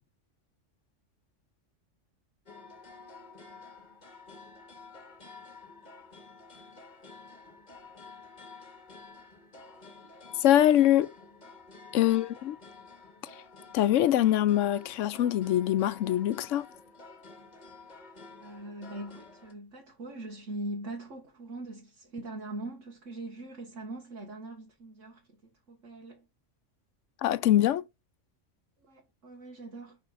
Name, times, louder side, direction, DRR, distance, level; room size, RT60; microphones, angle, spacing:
sound 1, 2.5-19.5, left 4 dB, 35° left, 1.6 m, -51 dB
voice 1, 10.4-11.1 11.9-12.6 13.7-16.7 27.2-27.8, left 12 dB, 85° left, 0.9 m, -23 dB
voice 2, 12.0-12.3 18.4-25.2 25.7-26.3 28.9-30.0, right 2 dB, 90° right, 1.9 m, -41 dB
10.0 x 4.2 x 2.5 m
omnidirectional pair, 1.2 m